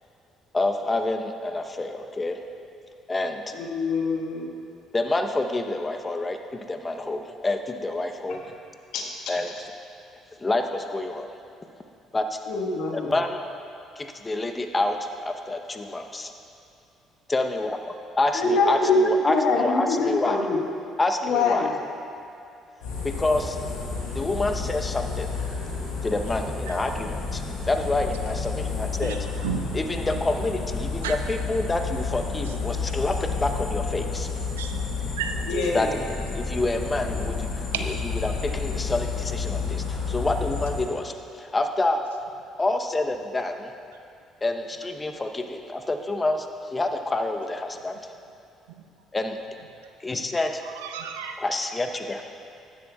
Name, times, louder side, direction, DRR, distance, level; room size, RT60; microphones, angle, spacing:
voice 1, 0.5-2.4 3.1-3.5 4.9-6.4 6.7-8.4 9.3-9.7 10.4-11.3 12.1-12.4 12.9-13.4 14.0-16.3 17.3-17.8 18.2-20.4 21.0-21.7 23.0-23.6 24.1-25.3 26.0-29.2 29.7-34.3 35.7-35.9 36.3-38.0 38.2-42.0 42.6-43.7 44.4-48.0 49.1-49.4 50.0-50.6 51.4-52.2, left 2 dB, 25° left, 5 dB, 0.8 m, -27 dB
voice 2, 3.5-4.5 8.9-9.0 12.5-13.1 18.3-19.0 19.2-20.6 21.2-21.7 35.5-36.0, left 4 dB, 70° left, 0 dB, 1.5 m, -24 dB
sound 1, 22.8-40.8, left 5 dB, 85° left, 2.5 m, -31 dB
voice 3, 29.0-29.7 31.0-31.2 34.5-34.8 35.2-35.3 37.7-37.8 50.8-51.4, right 8 dB, 90° right, 5 dB, 0.6 m, -32 dB
14.0 x 10.5 x 2.4 m, 2.5 s
hypercardioid pair, 60°, 0 cm